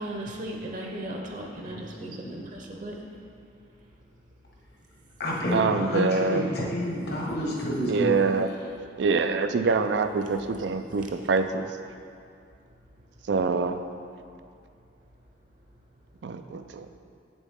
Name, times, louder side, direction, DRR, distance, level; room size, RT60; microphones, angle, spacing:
voice 1, 0.0-3.1 11.0-11.1, right 1 dB, 45° right, 0 dB, 0.8 m, -37 dB
voice 2, 1.7-2.4 5.2-8.3, equal, 60° left, -3 dB, 1.4 m, -30 dB
voice 3, 5.5-6.5 7.9-8.5 9.0-11.7 13.3-13.8 16.2-16.9, right 4 dB, 70° right, 8 dB, 0.4 m, -25 dB
8.3 x 7.1 x 3.6 m, 2.3 s
head